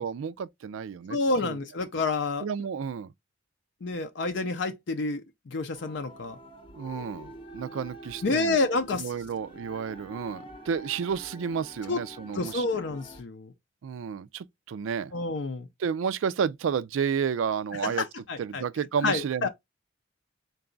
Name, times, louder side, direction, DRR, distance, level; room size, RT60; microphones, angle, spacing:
voice 1, 0.0-1.2 1.4-1.6 2.4-3.1 6.7-8.6 8.9-12.7 13.8-15.1 15.8-18.0 18.4-19.5, right 7 dB, 85° right, 0.3 m, -31 dB
voice 2, 1.1-2.5 3.8-6.4 8.2-9.1 11.9-12.0 12.3-13.5 15.1-15.7 17.8-18.6 19.0-19.5, left 3 dB, 65° left, 0.5 m, -29 dB
sound 1, 5.7-13.2, equal, 25° left, 0.7 m, -46 dB
3.9 x 2.3 x 3.8 m
head